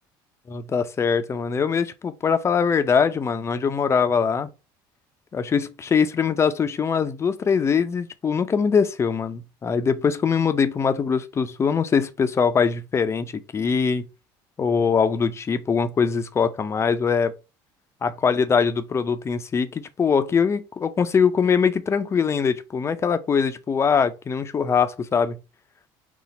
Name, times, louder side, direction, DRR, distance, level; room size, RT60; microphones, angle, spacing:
voice 1, 0.5-4.5 5.3-14.0 14.6-17.3 18.0-25.4, left 6 dB, 30° left, 0.5 m, -22 dB
4.1 x 2.4 x 4.0 m
supercardioid pair, 105°, 10 cm